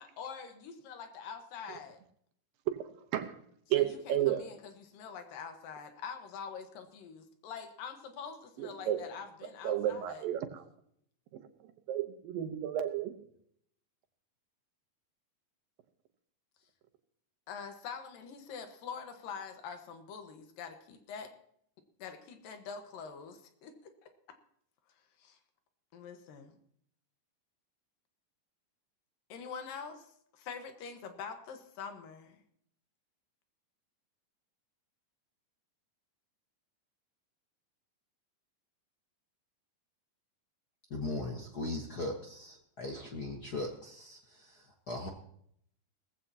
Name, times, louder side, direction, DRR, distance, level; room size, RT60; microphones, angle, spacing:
voice 1, 0.0-2.0 3.8-4.0 4.3-10.2 17.5-21.3 22.0-24.4 25.2-25.4 25.9-26.6 29.3-32.4, left 6 dB, 80° left, 6 dB, 3.1 m, -45 dB
voice 2, 2.7-3.3 3.7-4.4 8.6-9.0 9.4-10.6 11.3-13.2, right 11 dB, 90° right, 7 dB, 2.8 m, -33 dB
voice 3, 40.9-45.1, left 2 dB, 55° left, 1 dB, 1.0 m, -39 dB
19.0 x 15.0 x 2.9 m, 0.67 s
omnidirectional pair, 3.9 m